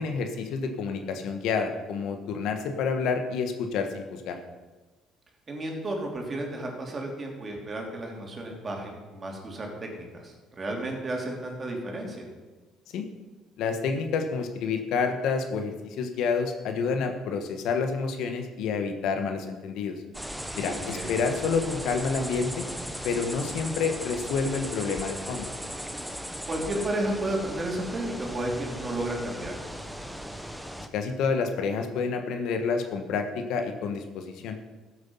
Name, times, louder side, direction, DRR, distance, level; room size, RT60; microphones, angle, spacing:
voice 1, 0.0-4.4 12.9-13.0 13.6-19.9 20.6-22.7 23.0-25.5 30.9-34.6, left 5 dB, 75° left, 6 dB, 1.4 m, -29 dB
voice 2, 5.5-12.3 20.7-21.1 26.5-29.5, right 1 dB, 35° right, 0 dB, 3.5 m, -32 dB
sound 1, 20.1-30.9, equal, ahead, 1.1 m, -37 dB
14.5 x 8.0 x 5.6 m, 1.3 s
supercardioid pair, 80°, 0 cm